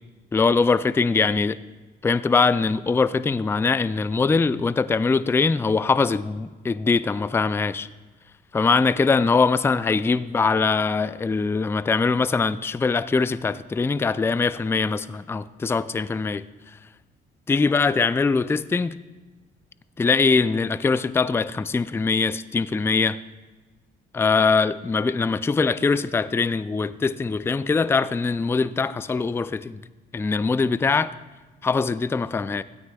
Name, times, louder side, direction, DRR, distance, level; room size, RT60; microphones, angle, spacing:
voice 1, 0.3-1.6 2.0-7.9 8.5-16.4 17.5-19.0 20.0-23.2 24.1-29.8 30.1-31.1 31.6-32.6, left 4 dB, 10° left, 15 dB, 0.3 m, -22 dB
16.5 x 12.5 x 2.3 m, 1.2 s
cardioid pair, 90°, 20 cm